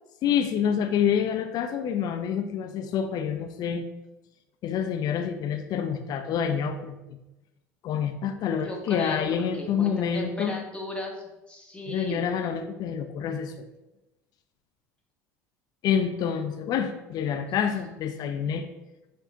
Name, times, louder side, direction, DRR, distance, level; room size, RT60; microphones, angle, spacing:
voice 1, 0.2-3.9 4.6-7.2 7.8-10.6 11.9-13.5 15.8-18.7, left 8 dB, 50° left, 7 dB, 0.5 m, -27 dB
voice 2, 8.6-12.3, left 1 dB, 10° left, 0 dB, 1.0 m, -36 dB
4.7 x 2.7 x 2.6 m, 0.97 s
hypercardioid pair, 75°, 9 cm